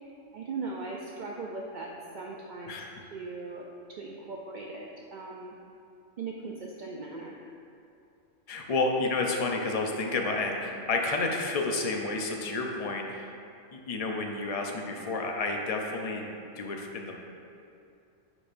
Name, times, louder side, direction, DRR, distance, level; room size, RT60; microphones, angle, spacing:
voice 1, 0.0-2.8 3.1-5.6 6.2-7.4, right 3 dB, 65° right, -1 dB, 0.4 m, -39 dB
voice 2, 8.5-13.3 13.7-16.3 16.6-17.2, left 3 dB, 55° left, 2 dB, 0.4 m, -30 dB
9.6 x 4.8 x 2.5 m, 2.6 s
omnidirectional pair, 1.3 m